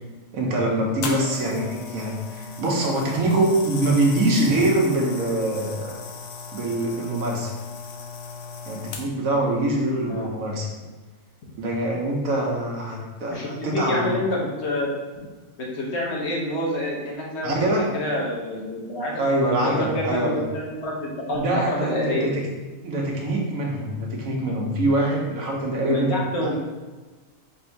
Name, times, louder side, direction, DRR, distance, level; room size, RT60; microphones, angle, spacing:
voice 1, 0.3-6.0 6.5-7.5 8.6-10.7 11.6-14.1 17.4-17.9 19.2-20.4 21.3-22.3 22.8-26.6, right 1 dB, 85° right, -1 dB, 1.3 m, -24 dB
sound 1, 1.0-9.3 10.1-10.3, left 5 dB, 85° left, 1.0 m, -37 dB
voice 2, 13.3-14.9 15.6-17.6 17.9-19.2 19.6-22.3 25.8-26.6, left 1 dB, 55° left, -3 dB, 1.1 m, -27 dB
4.2 x 2.6 x 4.5 m, 1.3 s
omnidirectional pair, 1.4 m